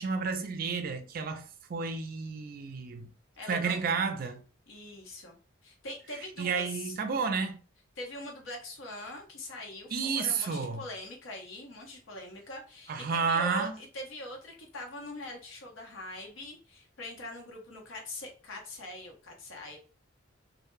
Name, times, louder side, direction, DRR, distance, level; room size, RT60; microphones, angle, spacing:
voice 1, 0.0-3.1 3.5-4.4 6.4-7.6 9.9-10.8 12.9-13.8, right 5 dB, 45° right, 0.4 m, -31 dB
voice 2, 3.4-3.8 4.7-7.0 8.0-19.8, left 2 dB, 90° left, 0.8 m, -43 dB
2.1 x 2.1 x 3.0 m
head